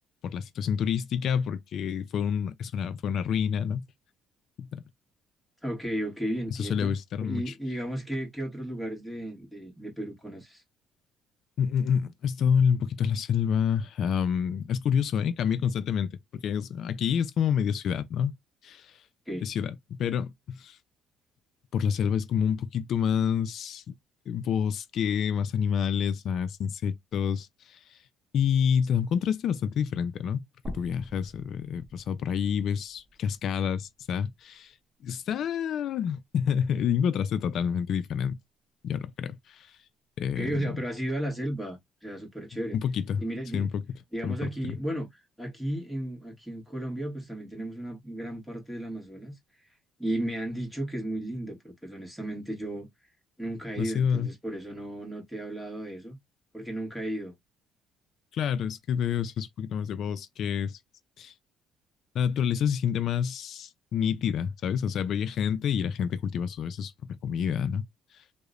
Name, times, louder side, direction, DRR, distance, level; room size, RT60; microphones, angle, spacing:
voice 1, 0.2-3.8 4.6-4.8 6.5-7.5 11.6-18.3 18.6-18.9 19.4-20.8 21.7-23.9 24.3-27.5 28.3-34.7 35.0-38.4 38.8-39.7 40.2-40.8 42.7-43.2 43.5-43.8 44.2-44.8 53.8-54.3 58.3-60.8 61.2-61.3 62.1-67.8, left 7 dB, 60° left, 0.3 m, -28 dB
voice 2, 5.6-7.0 7.2-10.6 19.3-19.4 40.3-42.8 43.2-43.7 44.1-45.1 45.4-49.3 50.0-52.9 53.4-56.2 56.5-57.3, right 1 dB, ahead, 1.3 m, -34 dB
sound 1, 30.6-34.8 35.2-35.3 36.7-36.8, equal, 30° right, 0.7 m, -47 dB
2.9 x 2.0 x 2.4 m
cardioid pair, 125°, 0 cm